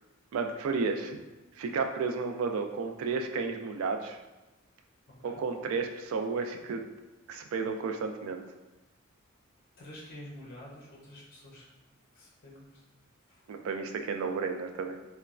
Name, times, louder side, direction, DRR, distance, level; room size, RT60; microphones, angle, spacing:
voice 1, 0.3-1.2 1.6-4.2 5.2-6.8 7.3-8.4 13.5-15.0, right 4 dB, 75° right, 6 dB, 0.3 m, -32 dB
voice 2, 5.1-5.4 9.8-11.7 12.1-12.8 13.3-13.5, left 1 dB, 45° left, -6 dB, 0.6 m, -48 dB
3.0 x 2.1 x 2.4 m, 1.1 s
head